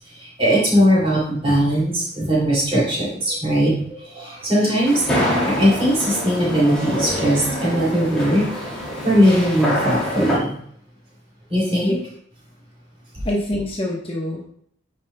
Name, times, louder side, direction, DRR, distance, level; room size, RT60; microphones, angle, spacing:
voice 1, 0.2-8.5 9.0-10.5 11.5-12.0, equal, 30° right, -6 dB, 2.7 m, -19 dB
sound 1, 4.8-10.4, left 1 dB, 5° left, 2.5 m, -25 dB
voice 2, 13.2-14.4, left 1 dB, 30° left, -2 dB, 1.0 m, -25 dB
9.8 x 5.1 x 2.2 m, 0.63 s
head